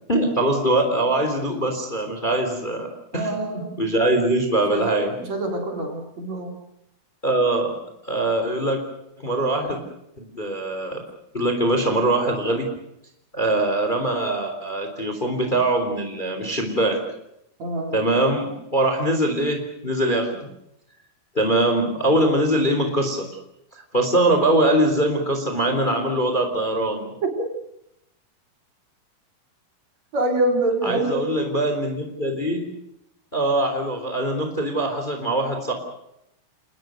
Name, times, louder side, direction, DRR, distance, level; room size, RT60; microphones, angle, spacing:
voice 1, 0.1-2.9 3.1-5.1 7.2-7.7 8.0-8.8 9.2-9.8 10.2-11.0 11.3-12.7 13.3-17.0 17.9-20.5 21.3-23.3 23.7-27.1 30.8-32.6 33.3-35.7, right 1 dB, 15° left, 5 dB, 3.5 m, -22 dB
voice 2, 3.1-3.8 4.7-6.6 17.6-17.9 27.2-27.3 30.1-31.2, right 2 dB, 45° right, 3 dB, 4.9 m, -25 dB
30.0 x 20.0 x 6.6 m, 0.81 s
omnidirectional pair, 4.3 m